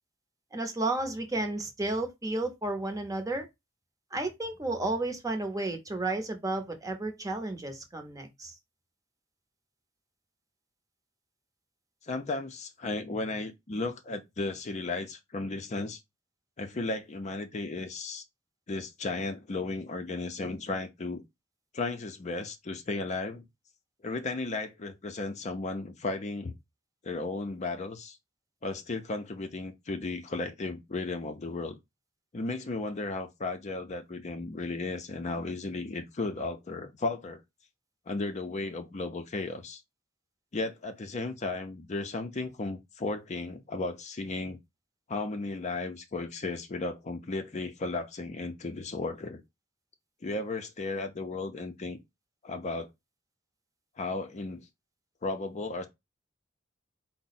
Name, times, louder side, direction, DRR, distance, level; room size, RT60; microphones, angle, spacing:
voice 1, 0.5-3.5 4.1-8.6, right 2 dB, 20° right, 0.7 m, -32 dB
voice 2, 12.0-16.0 16.6-18.2 18.7-21.2 21.7-23.4 24.0-26.6 27.0-28.2 28.6-31.8 32.3-37.4 38.1-39.8 40.5-44.6 45.1-49.4 50.2-52.0 52.4-52.9 54.0-54.7 55.2-55.9, left 3 dB, 35° left, 0.5 m, -34 dB
4.6 x 2.0 x 4.0 m
head